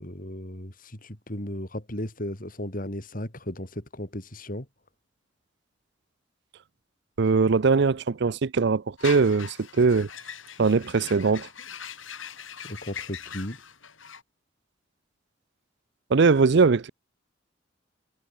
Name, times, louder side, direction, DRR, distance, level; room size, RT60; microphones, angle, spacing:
voice 1, 0.0-4.7 12.6-13.6, left 1 dB, 45° left, 5.2 m, -35 dB
voice 2, 7.2-10.1 10.6-11.5 16.1-16.9, right 4 dB, 60° right, 0.5 m, -21 dB
sound 1, 9.0-14.2, left 7 dB, 90° left, 7.4 m, -41 dB
head